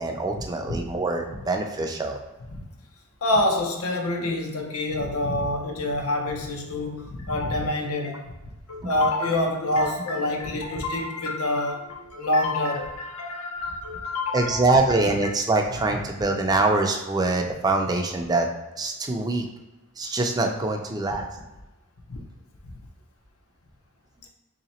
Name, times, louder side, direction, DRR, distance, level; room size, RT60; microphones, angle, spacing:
voice 1, 0.0-2.2 8.8-8.9 14.3-18.5 18.8-19.5 20.0-21.3, right 2 dB, 20° right, 3 dB, 0.4 m, -24 dB
voice 2, 3.2-8.3 8.7-15.3 22.1-22.2 22.6-22.7, left 1 dB, 85° left, 1 dB, 0.7 m, -27 dB
3.1 x 2.9 x 4.2 m, 1.1 s
head